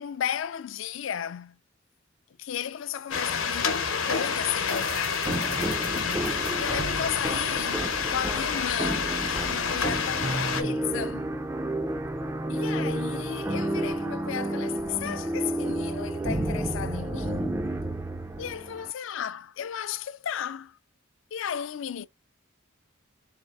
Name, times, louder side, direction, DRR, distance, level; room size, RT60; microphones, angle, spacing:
voice 1, 0.0-1.6 2.4-5.5 5.9-11.3 12.5-17.6 18.4-20.8 21.3-22.1, left 9 dB, 65° left, 0.4 m, -34 dB
sound 1, 3.1-10.6, left 6 dB, 80° left, 0.9 m, -28 dB
sound 2, 4.7-8.5, right 6 dB, 70° right, 0.5 m, -43 dB
sound 3, 5.3-18.9, right 1 dB, 10° right, 0.4 m, -31 dB
3.7 x 2.7 x 3.3 m
head